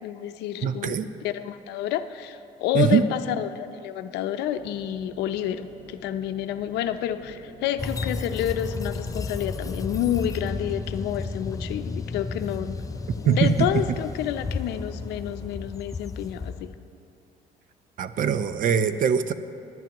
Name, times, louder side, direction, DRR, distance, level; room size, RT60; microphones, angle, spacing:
voice 1, 0.0-12.8 13.2-16.7, left 10 dB, 85° left, 9 dB, 0.6 m, -29 dB
voice 2, 0.6-1.1 2.7-3.0 13.3-13.7 18.0-19.3, right 7 dB, 55° right, 11 dB, 0.6 m, -22 dB
sound 1, 4.5-15.6, equal, 80° right, 3.5 m, -49 dB
Tram sound brakes, 7.8-16.8, left 4 dB, 20° left, 0.5 m, -33 dB
19.5 x 10.5 x 3.0 m, 2.6 s
cardioid pair, 110°, 17 cm